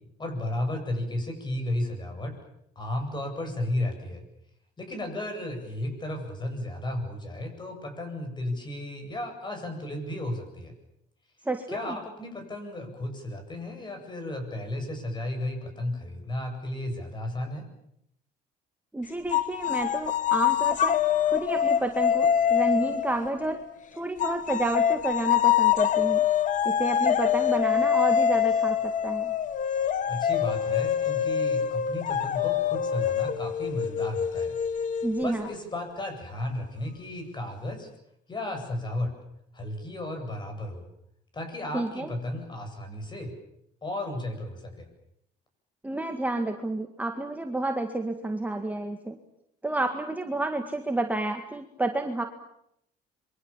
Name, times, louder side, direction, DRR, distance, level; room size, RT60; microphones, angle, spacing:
voice 1, 0.2-2.4 2.8-4.2 4.8-10.7 11.7-17.7 30.1-34.5 35.2-37.9 38.3-39.1 39.5-40.9 41.3-43.3 43.8-44.9, left 1 dB, 25° left, 6 dB, 8.0 m, -34 dB
voice 2, 11.5-12.0 18.9-21.0 21.2-23.6 23.9-26.2 26.6-29.3 35.0-35.5 41.7-42.1 45.8-49.2 49.6-52.2, right 2 dB, 10° right, 4 dB, 2.0 m, -30 dB
sound 1, 19.3-23.7 24.2-35.6, left 9 dB, 50° left, 1.3 m, -25 dB
27.5 x 23.5 x 7.4 m, 0.77 s
cardioid pair, 110°, 17 cm